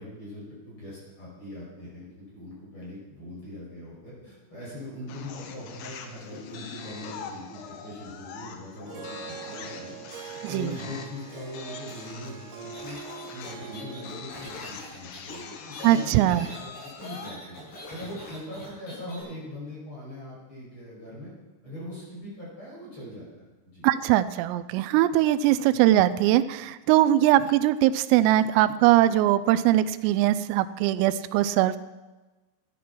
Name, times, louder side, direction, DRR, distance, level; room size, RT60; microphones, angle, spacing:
voice 1, 0.0-9.9 10.5-13.0 13.3-17.6 17.9-21.3 21.6-23.2 23.6-23.8, left 1 dB, 25° left, -6 dB, 6.4 m, -41 dB
sound 1, 5.1-17.4, left 6 dB, 75° left, 3.2 m, -43 dB
Harp, 8.9-14.7, right 9 dB, 65° right, 2.8 m, -44 dB
sound 2, 12.7-19.2, left 1 dB, 45° left, 7.2 m, -43 dB
voice 2, 15.8-16.5 23.8-31.8, right 13 dB, 90° right, 14 dB, 3.3 m, -21 dB
14.5 x 10.0 x 5.9 m, 1.2 s
omnidirectional pair, 5.9 m